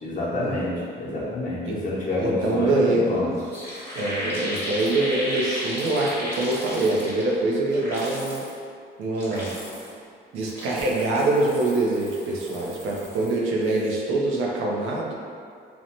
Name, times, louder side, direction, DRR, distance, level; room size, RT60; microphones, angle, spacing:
voice 1, 0.0-3.3, left 1 dB, 40° left, -6 dB, 0.7 m, -28 dB
voice 2, 2.2-3.1 3.9-8.4 9.0-9.6 10.3-15.1, right 2 dB, 85° right, -3 dB, 0.5 m, -24 dB
sound 1, 3.1-3.2 3.4-7.4 7.7-8.5 9.0-10.0 10.4-13.4 13.6-14.0, equal, 10° left, 0.9 m, -34 dB
2.6 x 2.1 x 2.8 m, 2.3 s
cardioid pair, 90°, 20 cm